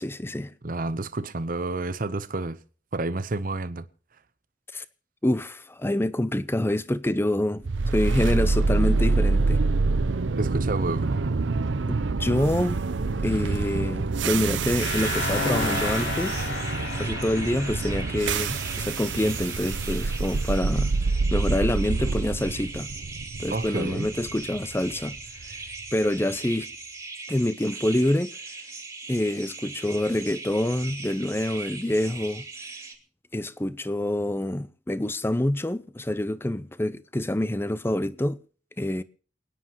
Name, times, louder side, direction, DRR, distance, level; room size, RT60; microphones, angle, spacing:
voice 1, 0.0-0.5 4.7-4.8 5.2-9.6 11.9-12.8 13.2-16.5 16.9-20.9 21.3-22.9 23.4-25.2 25.9-26.7 27.3-28.3 29.1-32.5 33.3-38.4 38.8-39.0, left 1 dB, 10° left, 0.6 m, -26 dB
voice 2, 0.6-2.6 2.9-3.8 10.4-11.2 23.5-24.1, right 2 dB, 50° right, 0.8 m, -29 dB
sound 1, 7.6-25.7, right 3 dB, 85° right, 0.7 m, -26 dB
sound 2, 14.6-33.0, right 3 dB, 15° right, 2.4 m, -40 dB
sound 3, 14.8-19.7, left 3 dB, 75° left, 2.7 m, -32 dB
28.5 x 9.7 x 3.0 m
head